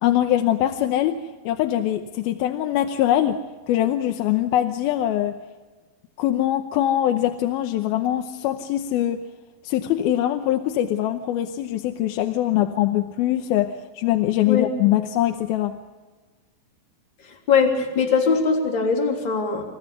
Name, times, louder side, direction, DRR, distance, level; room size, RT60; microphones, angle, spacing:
voice 1, 0.0-3.4 3.7-5.4 6.2-9.2 9.6-15.8, left 12 dB, 85° left, 6 dB, 2.7 m, -22 dB
voice 2, 17.2-19.6, left 5 dB, 30° left, 0 dB, 3.8 m, -21 dB
28.5 x 15.0 x 6.9 m, 1.3 s
omnidirectional pair, 4.3 m